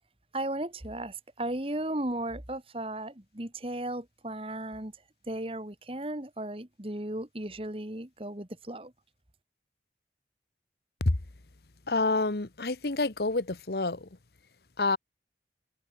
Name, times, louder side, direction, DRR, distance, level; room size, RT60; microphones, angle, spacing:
voice 1, 0.3-4.9 5.3-8.9, right 1 dB, 30° right, 2.0 m, -35 dB
voice 2, 11.9-14.1 14.8-15.0, left 3 dB, 65° left, 1.2 m, -28 dB
open air
head